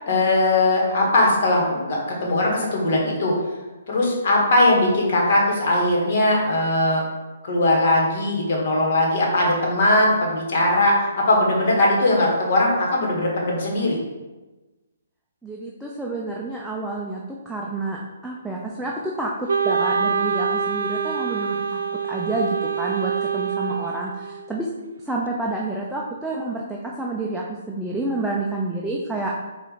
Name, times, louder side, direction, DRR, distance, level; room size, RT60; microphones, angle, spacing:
voice 1, 0.1-3.3 3.9-7.0 7.4-14.0, left 1 dB, 50° left, -2 dB, 1.3 m, -20 dB
voice 2, 15.4-21.8 22.1-22.5 22.8-24.7 25.0-29.3, right 2 dB, 5° right, -4 dB, 0.4 m, -29 dB
Wind instrument woodwind instrument, 19.5-24.6, right 6 dB, 80° right, 0.3 m, -25 dB
4.3 x 2.4 x 4.0 m, 1.2 s
hypercardioid pair, 150°, 0 cm